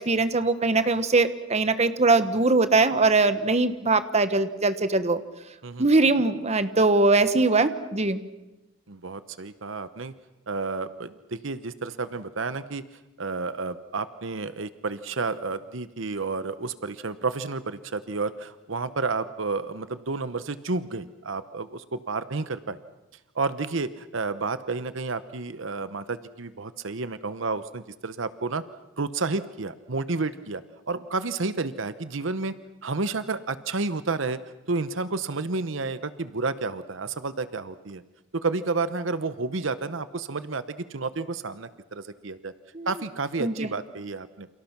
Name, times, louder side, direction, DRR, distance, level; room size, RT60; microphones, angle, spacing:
voice 1, 0.0-5.2 5.8-8.2 42.7-42.9 43.4-43.7, right 3 dB, 35° right, 11 dB, 1.3 m, -21 dB
voice 2, 8.9-10.1 10.5-12.8 13.2-22.8 23.3-28.6 29.0-32.5 32.8-34.4 34.7-38.0 38.3-42.5 42.9-44.5, right 3 dB, 70° right, 13 dB, 0.9 m, -31 dB
29.5 x 28.5 x 6.0 m, 0.99 s
head